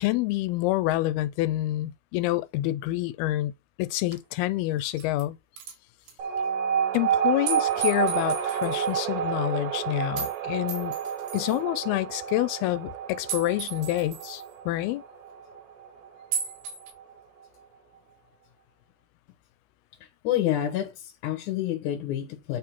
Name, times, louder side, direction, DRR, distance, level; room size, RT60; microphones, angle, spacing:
voice 1, 0.0-3.5 3.8-5.4 6.9-10.9 11.3-15.0, left 16 dB, 90° left, 2.6 m, -27 dB
sound 1, 4.1-4.2 4.8-5.2 5.6-5.7 6.1-6.2 7.5-8.9 10.2-10.3 10.7-11.6 13.3-14.4 16.3-16.9, right 7 dB, 85° right, 3.8 m, -35 dB
sound 2, 6.2-17.1, right 8 dB, 65° right, 2.4 m, -29 dB
voice 2, 20.2-22.6, left 12 dB, 65° left, 2.3 m, -28 dB
8.9 x 3.8 x 4.4 m
omnidirectional pair, 4.4 m